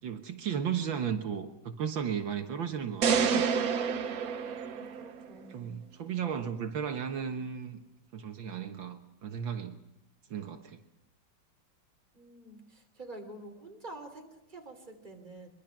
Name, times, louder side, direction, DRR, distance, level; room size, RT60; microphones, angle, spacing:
voice 1, 0.0-3.5 5.5-7.8 8.1-9.8 10.3-10.8, right 7 dB, 75° right, 6 dB, 2.1 m, -35 dB
sound 1, 3.0-5.3, right 6 dB, 55° right, 1.3 m, -28 dB
voice 2, 4.6-5.7 12.1-15.5, right 2 dB, 20° right, 3 dB, 3.4 m, -48 dB
24.0 x 23.5 x 6.0 m, 0.91 s
omnidirectional pair, 2.2 m